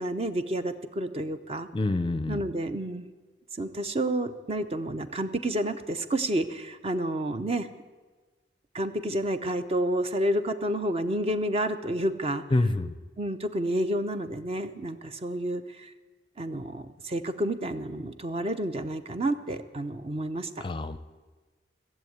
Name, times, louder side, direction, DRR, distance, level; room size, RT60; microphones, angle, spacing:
voice 1, 0.0-1.7 2.3-3.1 3.6-7.7 8.7-12.4 13.2-15.9 16.4-20.7, right 1 dB, 35° right, 10 dB, 0.7 m, -30 dB
voice 2, 1.7-2.4 12.5-12.9 20.6-21.0, left 2 dB, 30° left, 13 dB, 0.5 m, -26 dB
15.5 x 7.3 x 9.3 m, 1.3 s
head